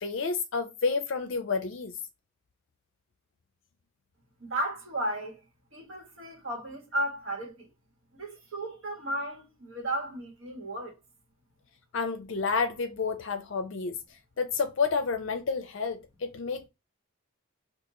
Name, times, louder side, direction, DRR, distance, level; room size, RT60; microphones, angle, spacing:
voice 1, 0.0-1.9 11.9-14.0 14.4-16.7, left 4 dB, 60° left, 0.4 m, -30 dB
voice 2, 4.4-5.4 5.7-7.7 8.1-11.0, right 1 dB, 75° right, 1.3 m, -34 dB
2.9 x 2.4 x 3.6 m
head